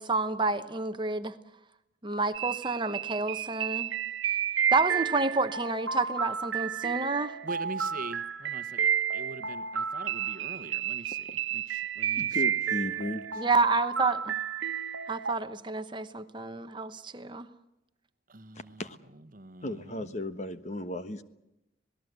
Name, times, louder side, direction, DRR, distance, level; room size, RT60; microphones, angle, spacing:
voice 1, 0.0-1.3 2.0-3.9 4.7-7.4 13.4-14.3 15.1-17.5, right 3 dB, 25° right, 9 dB, 0.9 m, -29 dB
sound 1, 2.3-15.3, right 8 dB, 75° right, 1.2 m, -31 dB
voice 2, 7.4-11.2 11.5-12.3 18.3-18.8 19.3-20.1, right 2 dB, 45° right, 10 dB, 1.2 m, -43 dB
voice 3, 12.2-13.2 18.8-19.0 19.6-21.2, left 1 dB, 35° left, 10 dB, 1.2 m, -35 dB
27.0 x 18.5 x 8.1 m, 0.88 s
head